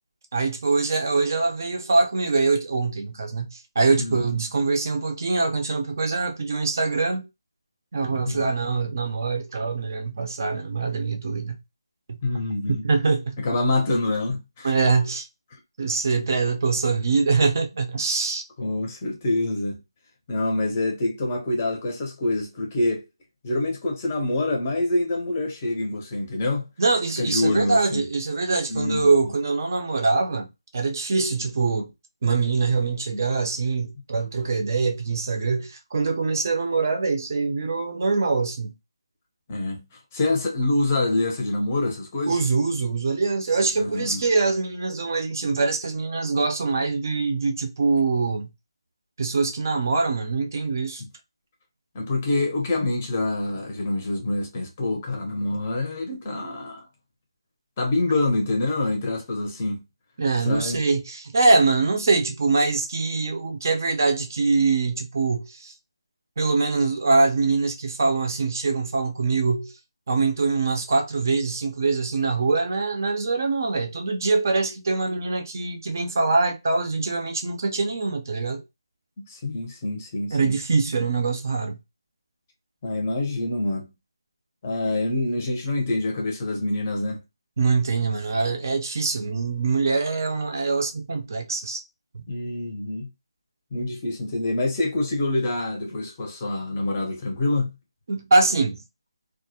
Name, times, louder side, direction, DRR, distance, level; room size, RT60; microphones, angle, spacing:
voice 1, 0.3-7.3 7.9-11.6 12.1-12.2 12.7-13.4 14.6-15.3 15.8-18.4 26.8-30.5 30.7-31.9 32.2-38.7 42.3-48.5 49.2-51.0 60.2-65.7 66.4-69.7 70.1-78.6 80.3-81.8 87.6-91.8 92.1-92.2 98.1-98.8, right 3 dB, 40° right, 0.5 m, -23 dB
voice 2, 4.0-4.4 8.2-8.5 12.2-12.8 13.4-14.7 18.6-19.8 20.3-23.0 23.4-26.7 27.2-28.0 28.7-29.3 39.5-39.9 40.1-42.4 43.8-44.2 51.9-56.9 57.8-59.8 60.5-60.8 79.2-80.6 82.8-83.9 84.6-87.2 92.3-93.1 93.7-97.7, left 2 dB, 20° left, 0.6 m, -26 dB
2.3 x 2.0 x 2.7 m
figure-of-eight pair, 170°, 3 cm